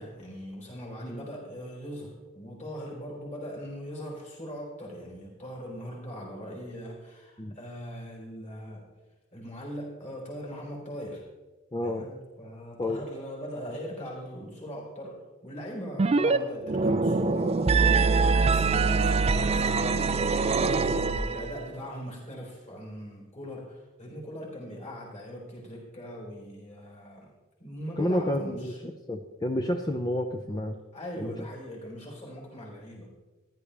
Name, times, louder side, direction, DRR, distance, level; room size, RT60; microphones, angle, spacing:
voice 1, 0.0-8.9 9.3-11.2 11.8-20.3 20.6-27.3 27.6-28.8 30.9-33.1, equal, 35° left, -3 dB, 4.0 m, -40 dB
voice 2, 11.7-12.1 12.8-13.0 21.3-21.5 28.0-30.8 31.2-31.3, left 1 dB, 20° left, 4 dB, 0.6 m, -30 dB
sound 1, 16.0-16.4 16.6-21.6, right 4 dB, 30° right, 0.4 m, -24 dB
15.0 x 11.0 x 3.4 m, 1.2 s
head